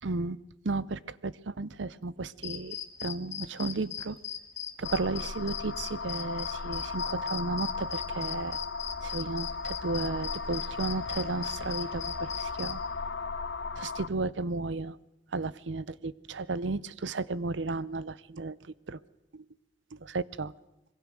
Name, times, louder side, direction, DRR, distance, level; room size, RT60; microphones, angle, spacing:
voice 1, 0.0-0.4 0.6-4.2 4.8-8.6 9.0-12.8 13.8-15.0 15.3-19.0 19.3-19.4 20.0-20.5, right 3 dB, 80° right, 19 dB, 0.7 m, -34 dB
sound 1, 2.4-12.7, left 10 dB, 40° left, 1.8 m, -38 dB
sound 2, 4.8-14.1, left 4 dB, 70° left, 0.8 m, -36 dB
25.5 x 22.0 x 6.4 m, 0.94 s
head